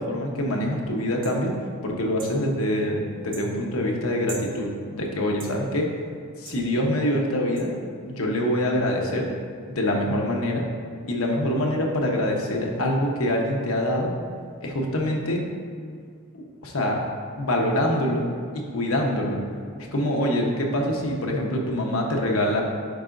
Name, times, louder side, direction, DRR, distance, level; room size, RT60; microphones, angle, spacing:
voice 1, 0.0-1.5 1.8-5.9 6.4-7.7 8.1-9.3 9.7-10.7 11.1-14.1 14.6-15.4 16.3-17.1 17.4-18.3 18.5-19.4 19.9-22.6, left 1 dB, 85° left, 0 dB, 1.1 m, -25 dB
sound 1, 1.2-1.4 2.2-2.4 3.3-3.5 4.3-4.5 5.4-5.6 6.5-6.6 7.6-7.7, right 4 dB, 40° right, 0.9 m, -40 dB
10.5 x 4.9 x 2.6 m, 2.1 s
head